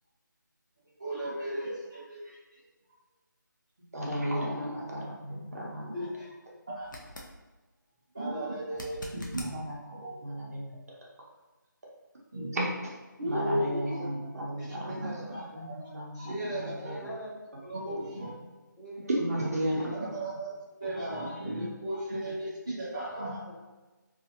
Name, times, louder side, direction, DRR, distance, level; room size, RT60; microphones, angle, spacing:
voice 1, 1.0-2.6 4.3-4.7 5.9-6.3 6.7-6.9 8.1-9.5 9.9-10.2 12.3-12.6 13.2-14.0 14.6-15.7 16.1-17.0 17.6-18.3 19.7-19.8 20.1-20.5 20.8-23.4, right 1 dB, 15° right, -13 dB, 0.4 m, -35 dB
voice 2, 3.9-5.9 8.8-8.9 9.2-10.8 13.3-17.0 19.1-19.9, right 1 dB, 50° right, -4 dB, 0.7 m, -34 dB
sound 1, 6.8-7.3 8.7-9.5 12.5-12.6, left 1 dB, 70° left, 0.6 m, -43 dB
voice 3, 16.8-17.8 18.8-19.2 21.2-21.3 23.5-23.6, equal, 5° left, -18 dB, 0.7 m, -44 dB
2.4 x 2.4 x 2.8 m, 1.2 s
figure-of-eight pair, 175°, 11 cm